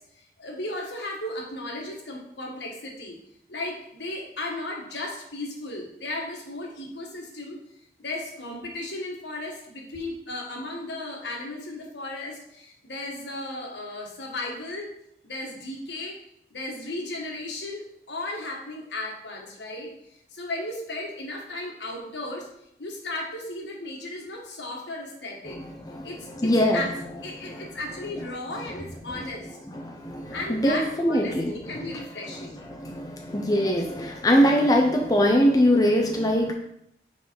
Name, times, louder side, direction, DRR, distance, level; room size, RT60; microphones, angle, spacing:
voice 1, 0.1-3.2 3.5-7.6 8.0-14.9 15.2-16.2 16.5-19.9 20.3-22.5 22.8-25.6 26.0-26.9 27.2-29.5 30.3-32.6, left 2 dB, 80° left, 0 dB, 1.5 m, -35 dB
voice 2, 25.5-26.1 26.4-26.8 27.4-27.7 29.2-29.3 29.7-32.0 32.7-36.5, equal, 20° left, 1 dB, 0.6 m, -23 dB
5.8 x 4.6 x 4.5 m, 0.76 s
head